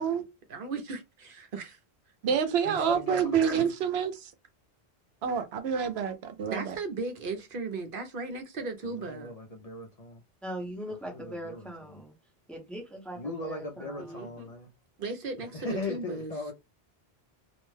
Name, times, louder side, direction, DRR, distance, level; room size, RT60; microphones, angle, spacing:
voice 1, 0.5-1.8 2.6-2.9 3.4-3.6 6.5-9.3 14.0-14.5 15.0-16.3, right 3 dB, 60° right, 0.8 m, -37 dB
voice 2, 2.2-4.3 5.2-6.7, right 7 dB, 85° right, 0.8 m, -28 dB
voice 3, 2.8-3.7 8.8-10.2 11.0-12.0 13.1-14.7 15.5-16.5, left 2 dB, 50° left, 0.5 m, -38 dB
voice 4, 10.4-12.1 12.5-14.3, equal, ahead, 0.6 m, -40 dB
2.4 x 2.1 x 3.2 m
omnidirectional pair, 1.0 m